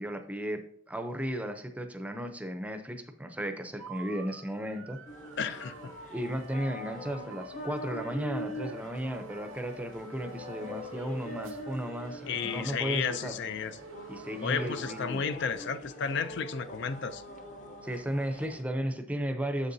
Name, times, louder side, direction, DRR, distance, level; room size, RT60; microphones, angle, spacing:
voice 1, 0.0-5.0 6.1-13.3 14.1-15.2 17.8-19.7, equal, 5° right, 7 dB, 0.6 m, -35 dB
sound 1, 3.8-15.0, right 2 dB, 85° right, 0.6 m, -48 dB
sound 2, 5.1-18.6, left 1 dB, 40° left, 0.9 m, -44 dB
voice 2, 5.4-5.9 12.3-13.8 14.4-17.2, left 6 dB, 60° left, 11 dB, 0.4 m, -33 dB
7.5 x 6.6 x 2.7 m, 0.62 s
head